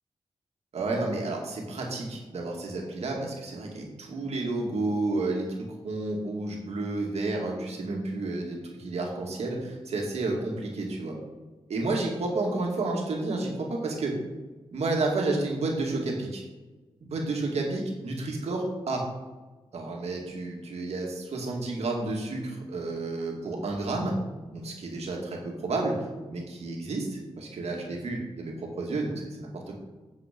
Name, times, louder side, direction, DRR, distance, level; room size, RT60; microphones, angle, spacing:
voice 1, 0.7-11.2 11.7-14.2 14.7-16.4 17.0-19.0 19.7-24.1 24.5-25.9 26.3-29.7, right 2 dB, 90° right, 0 dB, 2.3 m, -31 dB
9.3 x 7.3 x 5.3 m, 1.2 s
wide cardioid pair, 105°, 11 cm